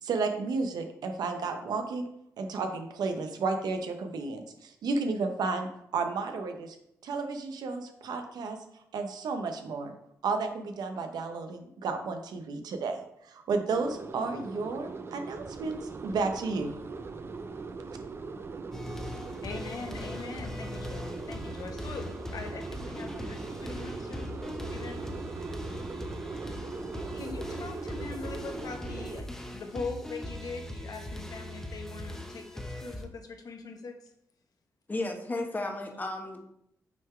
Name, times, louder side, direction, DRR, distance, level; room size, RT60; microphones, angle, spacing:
voice 1, 0.0-2.1 2.4-6.8 7.0-9.9 10.2-16.8, right 4 dB, 85° right, 5 dB, 0.8 m, -32 dB
sound 1, 13.7-29.2, right 4 dB, 35° right, 0.5 m, -40 dB
sound 2, 18.7-33.0, left 1 dB, 5° left, 0.8 m, -40 dB
voice 2, 19.4-22.0 22.3-24.3 24.6-25.0 27.1-34.0, left 4 dB, 65° left, 5 dB, 0.9 m, -41 dB
voice 3, 34.9-36.4, left 2 dB, 25° left, 3 dB, 1.1 m, -33 dB
6.1 x 3.8 x 4.4 m, 0.76 s
cardioid pair, 75°, 7 cm